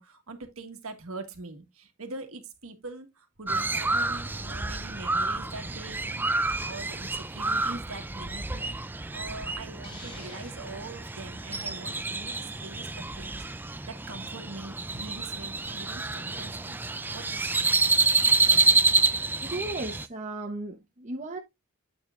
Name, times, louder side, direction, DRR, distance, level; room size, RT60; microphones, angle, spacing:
voice 1, 0.0-16.8 17.1-17.6, right 3 dB, 70° right, 1.8 m, -43 dB
Crow, 3.5-20.1, right 3 dB, 10° right, 0.4 m, -28 dB
Hiss, 9.8-11.2, left 2 dB, 25° left, 2.0 m, -49 dB
voice 2, 19.4-21.4, right 2 dB, 35° right, 1.0 m, -35 dB
8.6 x 7.1 x 2.5 m
head